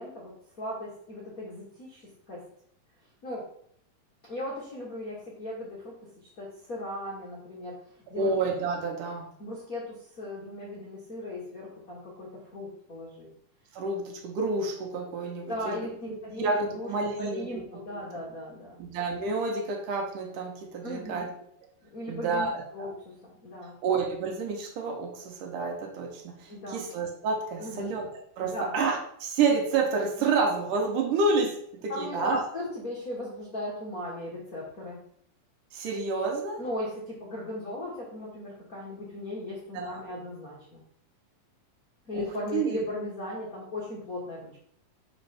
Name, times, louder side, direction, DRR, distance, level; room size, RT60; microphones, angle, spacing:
voice 1, 0.0-2.4 3.2-3.5 4.3-6.1 6.4-7.8 8.1-8.3 9.4-13.3 15.4-16.9 17.1-18.8 20.8-21.2 21.9-23.8 26.5-26.8 27.6-27.9 28.4-28.7 31.9-35.0 36.6-40.8 42.0-44.6, left 1 dB, 55° left, -5 dB, 0.9 m, -37 dB
voice 2, 8.1-9.3 13.7-15.8 16.4-17.5 18.8-21.3 22.1-22.9 23.8-32.4 35.7-36.6 39.7-40.0 42.1-42.3 42.5-42.8, right 4 dB, 70° right, 2 dB, 2.4 m, -29 dB
5.0 x 4.3 x 5.8 m, 0.66 s
omnidirectional pair, 4.1 m